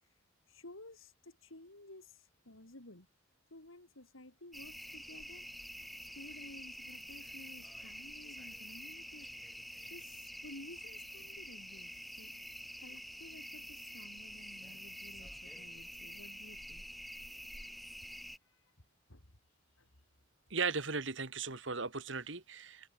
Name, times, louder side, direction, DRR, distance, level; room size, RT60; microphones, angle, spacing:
voice 1, 0.5-3.1 3.5-5.5 6.1-9.3 9.6-9.7 9.9-12.3 12.8-16.8 18.0-18.1 18.4-18.7 19.1-19.4 19.8-19.9, left 1 dB, 80° left, 4.1 m, -54 dB
sound 1, 4.5-18.4, equal, ahead, 0.8 m, -48 dB
voice 2, 20.5-22.9, right 4 dB, 65° right, 2.3 m, -37 dB
head